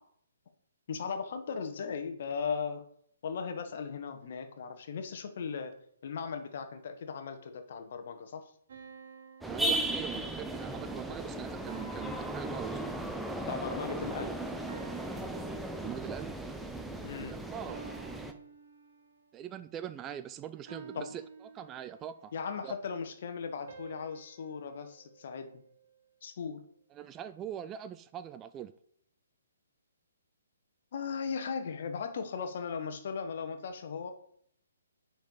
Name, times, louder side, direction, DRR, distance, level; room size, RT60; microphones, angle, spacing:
voice 1, 0.9-2.8 3.2-5.7 6.0-8.5 13.5-14.4 17.0-17.4 20.9-21.1 22.3-25.5 26.2-26.6 30.9-34.1, left 6 dB, 50° left, 1.2 m, -37 dB
sound 1, 8.7-10.6 11.7-13.3 14.7-16.3 17.7-19.4 20.7-22.3 23.7-26.0, right 4 dB, 50° right, 2.3 m, -52 dB
sound 2, 9.4-18.3, right 1 dB, 5° right, 0.7 m, -36 dB
voice 2, 9.5-12.8 15.8-16.3 17.5-17.8 19.3-21.2 21.5-22.3 22.6-22.8 26.9-28.7, right 10 dB, 20° right, 0.4 m, -42 dB
9.1 x 4.7 x 5.4 m
figure-of-eight pair, 130°, 0 cm